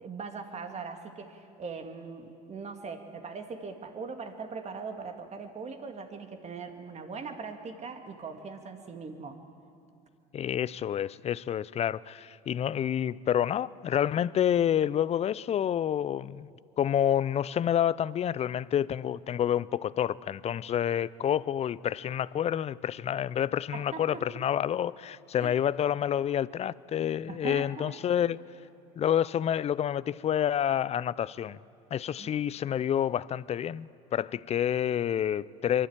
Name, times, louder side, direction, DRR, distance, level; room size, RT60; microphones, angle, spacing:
voice 1, 0.0-9.4 23.7-24.4 25.4-25.6 27.3-27.9 32.2-32.4, right 5 dB, 35° right, 2.1 m, -40 dB
voice 2, 10.3-16.5 16.8-28.4 29.0-31.6 31.9-35.9, left 10 dB, 35° left, 0.5 m, -28 dB
23.5 x 12.5 x 8.8 m
supercardioid pair, 85°, 20 cm